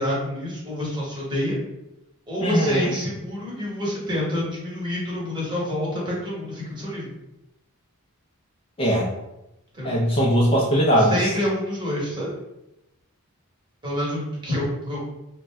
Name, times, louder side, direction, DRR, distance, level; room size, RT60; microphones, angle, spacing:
voice 1, 0.0-1.6 2.3-7.1 9.7-10.0 11.0-12.3 13.8-15.1, left 1 dB, 20° right, -6 dB, 1.0 m, -27 dB
voice 2, 2.4-2.9 8.8-9.1 9.8-11.2, equal, 25° left, -4 dB, 0.4 m, -20 dB
2.5 x 2.1 x 3.2 m, 0.89 s
head